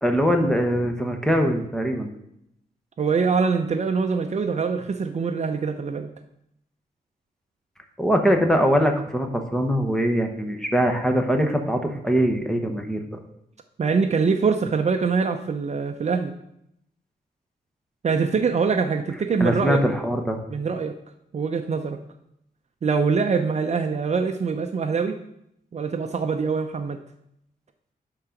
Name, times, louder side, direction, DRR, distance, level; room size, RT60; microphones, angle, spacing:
voice 1, 0.0-2.1 8.0-13.2 19.4-20.4, equal, 5° left, 4 dB, 1.0 m, -22 dB
voice 2, 3.0-6.1 13.8-16.3 18.0-19.8 20.5-21.0 21.3-22.0 22.8-25.2 25.7-27.0, right 5 dB, 40° right, 7 dB, 0.6 m, -24 dB
11.0 x 3.8 x 5.9 m, 0.77 s
wide cardioid pair, 140°, 17 cm